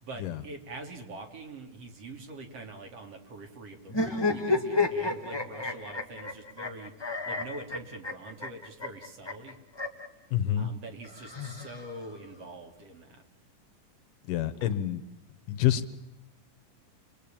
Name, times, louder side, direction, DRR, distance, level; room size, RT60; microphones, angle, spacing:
voice 1, 0.0-9.6 10.5-13.2 14.6-14.7, right 2 dB, 50° right, 4 dB, 3.5 m, -44 dB
sound 1, 3.9-10.1 11.0-12.2, left 3 dB, 15° left, 0.8 m, -31 dB
voice 2, 10.3-10.7 14.3-15.0 15.5-15.9, left 11 dB, 90° left, 12 dB, 2.8 m, -27 dB
28.5 x 22.0 x 8.9 m, 0.93 s
omnidirectional pair, 3.6 m